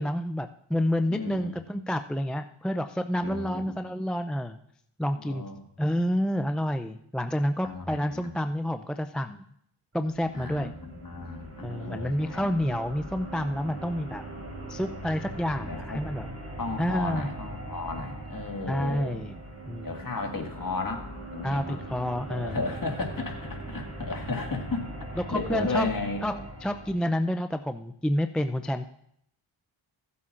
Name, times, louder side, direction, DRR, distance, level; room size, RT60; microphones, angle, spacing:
voice 1, 0.0-4.6 5.0-5.5 5.8-9.4 9.9-10.8 11.6-14.2 14.7-16.3 16.8-17.3 18.7-19.4 19.7-19.9 21.4-22.6 25.2-25.9 26.2-28.9, equal, ahead, 8 dB, 0.4 m, -29 dB
voice 2, 1.1-1.6 3.2-3.8 5.2-5.6 7.6-8.3 10.3-12.5 15.6-16.0 16.6-19.2 19.8-21.8 22.3-24.9 25.1-26.3, left 3 dB, 40° left, 2 dB, 2.0 m, -34 dB
sound 1, 9.9-26.9, right 1 dB, 30° right, 3.8 m, -41 dB
16.5 x 8.3 x 2.5 m, 0.71 s
cardioid pair, 50°, 49 cm